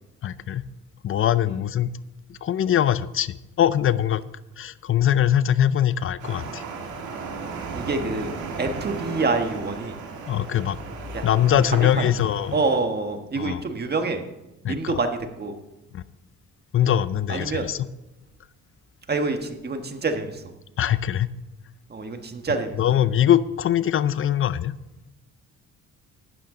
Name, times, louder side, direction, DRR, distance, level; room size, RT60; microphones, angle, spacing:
voice 1, 0.2-0.7 1.0-1.9 2.3-4.2 4.6-6.6 10.3-10.8 11.2-12.6 13.4-13.6 14.6-14.9 15.9-16.0 16.7-17.9 20.8-21.3 22.8-24.8, left 10 dB, 45° left, 16 dB, 0.6 m, -22 dB
sound 1, 6.2-12.8, right 4 dB, 75° right, 2.0 m, -35 dB
voice 2, 7.7-8.3 8.6-9.9 11.1-11.2 11.7-12.1 12.5-14.2 14.7-15.5 17.3-17.6 19.1-20.4 21.9-22.7, right 3 dB, 35° right, 6 dB, 1.4 m, -26 dB
12.0 x 9.1 x 3.8 m, 0.99 s
cardioid pair, 90°, 30 cm